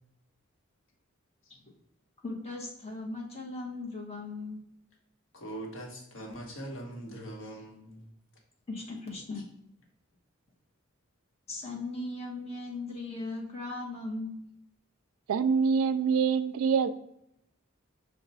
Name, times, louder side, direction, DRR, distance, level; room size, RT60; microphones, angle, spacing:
voice 1, 2.2-4.6 8.7-9.4 11.5-14.4, left 2 dB, 30° left, -2 dB, 1.1 m, -38 dB
voice 2, 5.3-8.0, right 1 dB, 75° left, 0 dB, 1.1 m, -41 dB
voice 3, 15.3-16.9, right 6 dB, 85° right, 12 dB, 0.3 m, -25 dB
5.8 x 2.3 x 3.9 m, 0.80 s
head